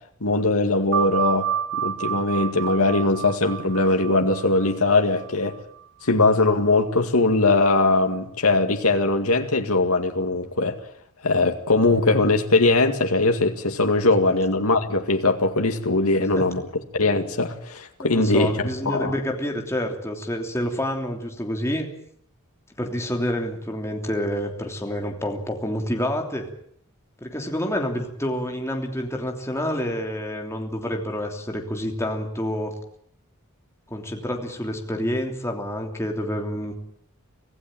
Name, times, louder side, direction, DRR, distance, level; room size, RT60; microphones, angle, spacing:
voice 1, 0.2-5.6 6.0-10.8 11.2-16.6 16.9-18.5 18.9-19.1, left 2 dB, 80° left, 2.1 m, -21 dB
sound 1, 0.9-6.1, right 9 dB, 55° right, 1.2 m, -30 dB
voice 2, 18.0-21.9 22.8-26.5 27.2-32.7 33.9-36.7, equal, 10° left, 3.2 m, -28 dB
25.5 x 15.5 x 9.1 m
head